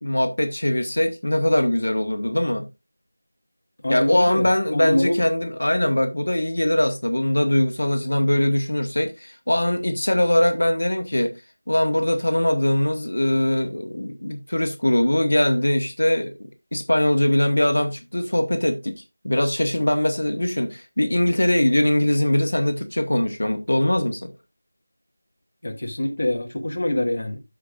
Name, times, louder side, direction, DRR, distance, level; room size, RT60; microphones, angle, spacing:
voice 1, 0.0-2.7 3.9-11.3 11.7-16.3 16.7-24.3, left 1 dB, 80° left, 1.4 m, -21 dB
voice 2, 3.8-5.2 25.6-27.4, left 1 dB, 45° left, 1.7 m, -25 dB
13.5 x 5.1 x 2.4 m
figure-of-eight pair, 175°, 0 cm